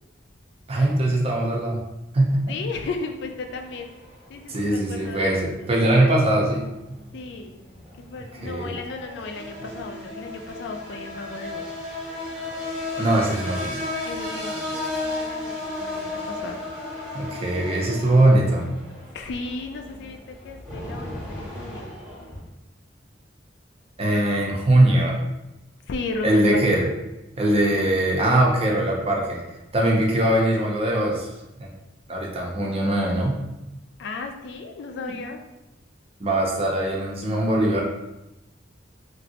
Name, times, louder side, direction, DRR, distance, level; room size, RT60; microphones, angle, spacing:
voice 1, 0.7-1.8 2.1-2.6 4.5-6.6 8.4-8.7 13.0-13.8 17.1-18.7 24.0-25.2 26.2-26.9 27.4-29.4 29.7-31.3 31.6-31.7 32.1-33.4 36.2-37.8, right 1 dB, 30° right, -1 dB, 0.5 m, -21 dB
voice 2, 2.5-3.9 4.3-5.7 7.1-7.6 8.0-11.7 14.0-16.6 19.1-20.2 20.4-22.0 25.9-26.6 34.0-35.4, left 3 dB, 65° left, 4 dB, 0.4 m, -35 dB
sound 1, 2.6-22.4, left 2 dB, 5° right, 0.8 m, -35 dB
3.0 x 2.5 x 2.8 m, 0.96 s
head